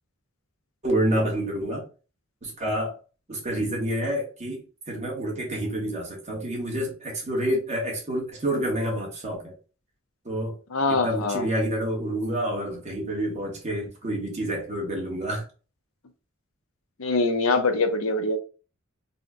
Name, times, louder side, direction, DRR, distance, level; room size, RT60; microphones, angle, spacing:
voice 1, 0.8-1.8 2.4-2.9 3.3-9.5 10.2-10.6 10.9-15.4, right 1 dB, 35° right, 1.2 m, -28 dB
voice 2, 10.7-11.4 17.0-18.4, left 3 dB, 80° left, 0.6 m, -23 dB
4.1 x 2.2 x 2.5 m
head